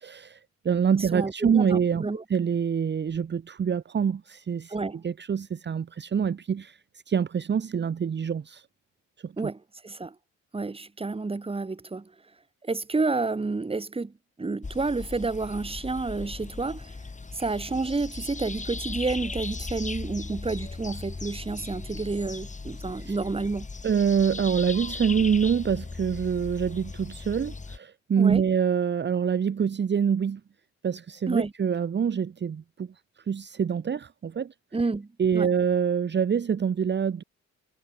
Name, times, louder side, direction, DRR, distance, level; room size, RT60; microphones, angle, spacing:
voice 1, 0.0-0.4 0.6-2.0 2.3-4.7 5.0-6.8 7.1-8.6 9.2-9.5 23.0-23.2 23.8-30.4 30.8-32.9 33.3-34.5 35.2-37.2, right 7 dB, 35° right, 1.1 m, -25 dB
voice 2, 0.9-2.2 4.7-5.0 9.4-10.2 10.5-12.1 12.6-14.1 14.4-16.9 17.3-23.7 28.2-28.5 31.3-31.5 34.7-35.5, right 3 dB, 20° right, 1.9 m, -30 dB
sound 1, 14.6-27.8, left 3 dB, 25° left, 5.1 m, -38 dB
cardioid pair, 90°, 30 cm